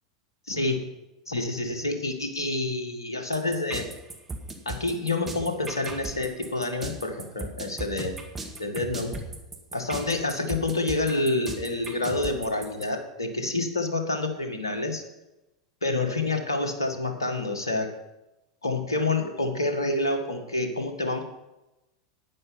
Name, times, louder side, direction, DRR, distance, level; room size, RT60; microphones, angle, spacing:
voice 1, 0.5-0.9 1.3-3.9 4.7-8.2 8.6-9.2 9.7-15.0 15.8-17.9 18.6-21.2, left 2 dB, 75° left, 5 dB, 1.9 m, -28 dB
sound 1, 3.3-12.8, right 3 dB, 10° right, 2.0 m, -37 dB
12.0 x 9.7 x 5.6 m, 0.95 s
figure-of-eight pair, 85°, 2 cm